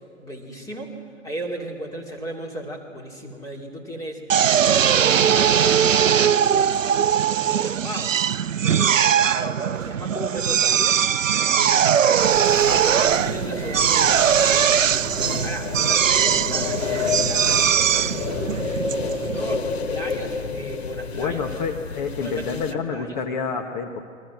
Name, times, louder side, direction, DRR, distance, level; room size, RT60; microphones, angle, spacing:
voice 1, 0.2-1.0 1.2-4.2 4.6-6.8 7.3-8.2 8.6-11.0 11.5-12.3 12.6-14.7 15.4-18.2 18.9-21.4 22.2-23.2, equal, 10° left, 0 dB, 3.1 m, -35 dB
Drill, 4.3-19.6, right 8 dB, 75° right, 0.5 m, -20 dB
sound 1, 12.2-22.7, left 5 dB, 55° left, 1.5 m, -30 dB
voice 2, 21.2-24.1, left 5 dB, 35° left, 3 dB, 1.6 m, -28 dB
29.5 x 23.5 x 6.4 m, 2.3 s
figure-of-eight pair, 120°, 39 cm